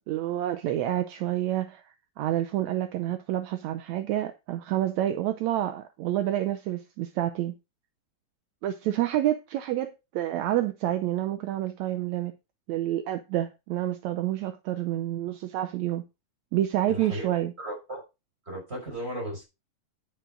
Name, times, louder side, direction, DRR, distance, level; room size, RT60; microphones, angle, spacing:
voice 1, 0.1-7.5 8.6-12.3 12.7-16.0 16.5-17.5, right 13 dB, 75° right, 1.7 m, -28 dB
voice 2, 16.9-17.3 17.6-18.0 18.5-19.4, right 1 dB, 15° right, 6.0 m, -35 dB
10.0 x 7.7 x 3.7 m
omnidirectional pair, 3.9 m